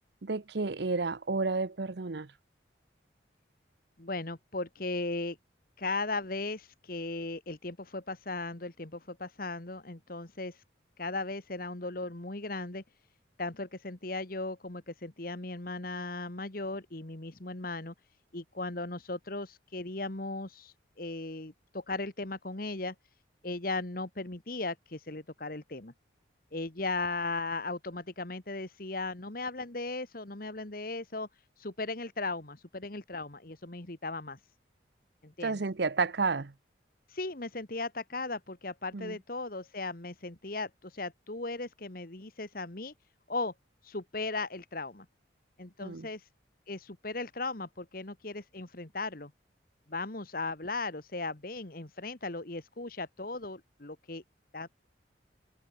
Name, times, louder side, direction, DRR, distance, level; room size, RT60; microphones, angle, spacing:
voice 1, 0.2-2.3 35.4-36.5 38.9-39.2 45.8-46.1, right 4 dB, 65° right, 0.8 m, -31 dB
voice 2, 4.0-5.4 5.8-10.6 11.0-12.8 13.4-17.9 18.3-22.9 23.4-25.9 26.5-31.3 31.6-34.4 35.2-35.6 37.1-42.9 43.3-43.5 43.8-45.0 45.6-46.3 46.7-49.3 49.9-54.2 54.5-54.7, left 3 dB, 50° left, 1.7 m, -37 dB
head